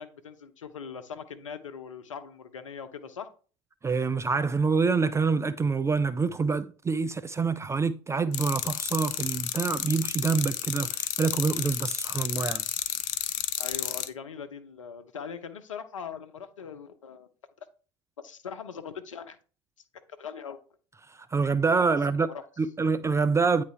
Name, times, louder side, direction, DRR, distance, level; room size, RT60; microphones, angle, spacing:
voice 1, 0.0-3.3 13.6-17.3 18.2-19.4 20.2-20.6 22.3-22.4, left 6 dB, 85° left, 0.8 m, -41 dB
voice 2, 3.8-12.6 21.1-22.3 22.6-23.6, right 4 dB, 20° right, 0.4 m, -26 dB
sound 1, 8.3-14.1, left 12 dB, 55° left, 0.7 m, -31 dB
9.2 x 3.3 x 3.3 m
hypercardioid pair, 75°, 16 cm